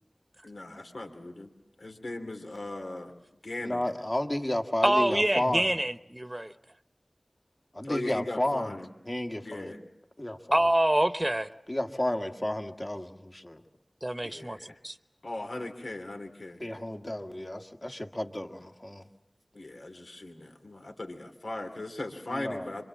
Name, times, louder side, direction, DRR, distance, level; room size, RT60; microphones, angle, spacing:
voice 1, 0.4-1.5 1.8-3.1 3.4-3.9 7.8-8.9 9.4-9.8 14.2-14.8 15.2-16.6 19.5-22.8, left 2 dB, 85° left, 4 dB, 2.7 m, -38 dB
voice 2, 3.6-5.7 7.7-8.8 9.1-9.8 10.2-10.7 11.7-13.6 16.6-19.1 22.3-22.7, left 1 dB, 35° left, 4 dB, 1.8 m, -32 dB
voice 3, 4.8-6.5 10.5-11.5 14.0-14.6 14.8-15.0, right 1 dB, 20° right, 11 dB, 1.0 m, -26 dB
26.0 x 25.0 x 7.5 m, 0.82 s
wide cardioid pair, 50°, 0 cm